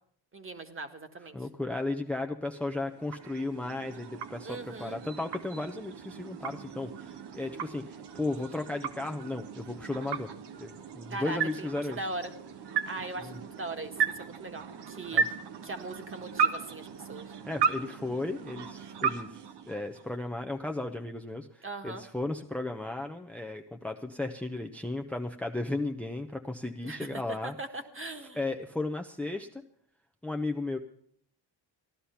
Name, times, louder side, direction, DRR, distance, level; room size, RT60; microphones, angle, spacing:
voice 1, 0.3-1.4 4.4-5.0 11.1-12.3 12.8-15.2 15.6-17.3 21.6-22.0 26.8-28.4, right 2 dB, 25° right, 7 dB, 1.7 m, -40 dB
voice 2, 1.3-10.3 10.6-12.0 13.2-13.4 15.1-15.3 17.4-19.4 19.7-27.5 28.3-29.6 30.2-30.8, left 2 dB, 5° left, 5 dB, 0.8 m, -35 dB
sound 1, 2.5-20.3, right 6 dB, 60° right, 1.3 m, -36 dB
15.0 x 11.0 x 5.8 m, 0.66 s
cardioid pair, 80°, 45 cm